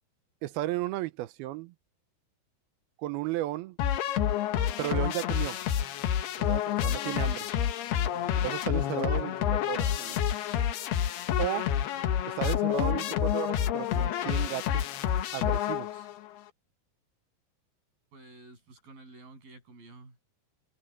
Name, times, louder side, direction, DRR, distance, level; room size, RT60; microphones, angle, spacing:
voice 1, 0.4-1.7 3.0-3.8 4.8-5.6 6.4-7.5 8.4-10.2 11.4-11.7 12.3-14.8 15.3-16.0, right 15 dB, 85° right, 2.6 m, -34 dB
sound 1, 3.8-16.2, left 10 dB, 85° left, 3.4 m, -28 dB
voice 2, 18.1-20.2, right 2 dB, 65° right, 9.5 m, -51 dB
omnidirectional pair, 4.5 m